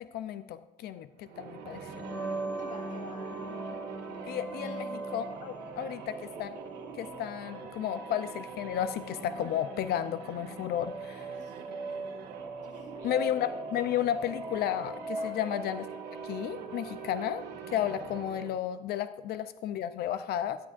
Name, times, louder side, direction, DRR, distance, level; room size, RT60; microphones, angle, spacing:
voice 1, 0.0-2.2 4.3-6.5 7.0-11.3 13.0-15.8 16.2-20.6, left 10 dB, 70° left, 12 dB, 0.5 m, -33 dB
sound 1, 1.2-18.7, right 6 dB, 80° right, 1.5 m, -44 dB
sound 2, 1.9-17.5, right 1 dB, 10° left, 3.7 m, -41 dB
voice 2, 2.6-3.4 4.6-4.8 5.7-5.9 11.3-12.3 12.6-13.1 15.2-15.4, left 3 dB, 50° left, 1 dB, 3.1 m, -51 dB
12.5 x 10.5 x 2.5 m, 1.0 s
cardioid pair, 110°, 17 cm